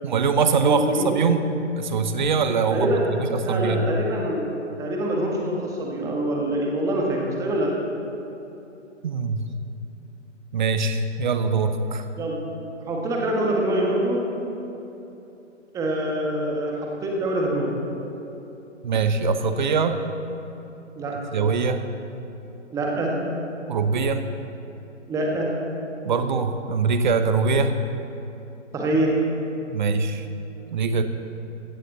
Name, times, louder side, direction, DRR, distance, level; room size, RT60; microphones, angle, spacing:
voice 1, 0.0-1.5 1.8-3.8 9.0-9.5 10.5-12.1 18.8-20.0 21.3-21.8 23.7-24.2 26.0-27.8 29.7-30.3 30.7-31.0, right 5 dB, 40° right, 9 dB, 1.0 m, -23 dB
voice 2, 0.6-1.3 2.7-3.0 3.4-4.5 4.8-7.7 12.2-12.4 12.9-14.2 15.7-17.7 21.0-21.1 22.7-23.1 25.1-25.5 28.7-29.2, right 1 dB, 10° right, -1 dB, 1.5 m, -25 dB
16.5 x 14.0 x 4.0 m, 3.0 s
figure-of-eight pair, 135°, 37 cm